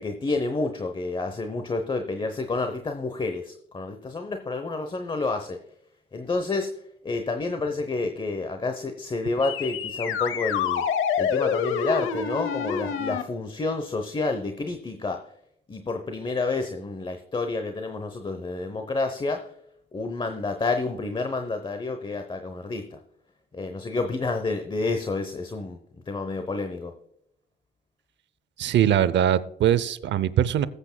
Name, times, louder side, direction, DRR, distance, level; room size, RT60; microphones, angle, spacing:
voice 1, 0.0-5.6 6.1-6.7 7.0-10.8 11.2-15.2 15.7-19.5 19.9-23.0 23.5-25.8 26.1-26.9, left 3 dB, 25° left, 6 dB, 0.9 m, -29 dB
sound 1, 9.4-13.2, left 7 dB, 85° left, 0.8 m, -27 dB
voice 2, 28.6-30.7, right 10 dB, 65° right, 17 dB, 0.6 m, -22 dB
20.0 x 8.1 x 2.2 m, 0.76 s
cardioid pair, 90°, 20 cm